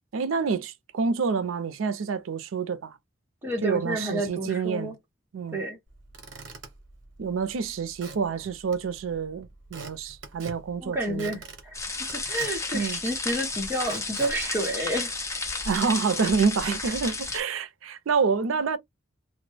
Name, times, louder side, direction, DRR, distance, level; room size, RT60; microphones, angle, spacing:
voice 1, 0.1-3.0 3.6-4.9 5.3-5.6 7.2-11.4 12.7-13.0 15.7-18.8, right 5 dB, 90° right, 0.4 m, -27 dB
voice 2, 3.4-4.9 5.5-5.8 10.8-11.7 12.1-15.2, right 1 dB, 10° right, 0.8 m, -30 dB
Squeak / Wood, 5.9-15.5, right 3 dB, 65° right, 0.9 m, -47 dB
sound 1, 11.7-17.4, left 3 dB, 15° left, 0.5 m, -32 dB
2.1 x 2.0 x 3.1 m
head